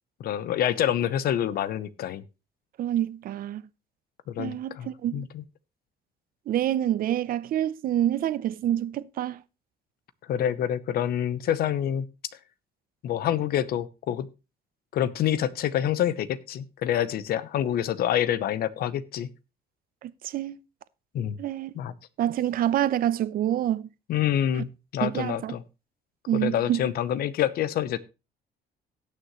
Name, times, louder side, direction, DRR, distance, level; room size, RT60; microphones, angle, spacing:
voice 1, 0.2-2.2 4.3-5.4 10.3-12.1 13.0-14.3 14.9-19.3 21.1-21.4 21.8-21.9 24.1-25.6 26.3-28.0, left 10 dB, 65° left, 0.9 m, -27 dB
voice 2, 2.8-3.6 4.4-5.3 6.5-9.4 20.0-20.6 21.4-21.7 22.2-23.9 25.0-25.6 26.3-26.9, right 11 dB, 60° right, 0.7 m, -27 dB
18.0 x 6.6 x 3.1 m
cardioid pair, 110°, 17 cm